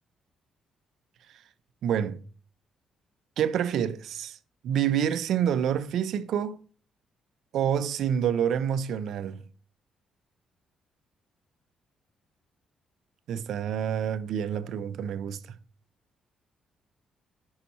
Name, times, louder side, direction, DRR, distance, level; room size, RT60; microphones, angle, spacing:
voice 1, 1.8-2.2 3.4-4.4 4.6-6.6 7.5-9.4 13.3-15.4, right 9 dB, 75° right, 0.5 m, -27 dB
5.5 x 4.2 x 5.4 m
cardioid pair, 90°, 0 cm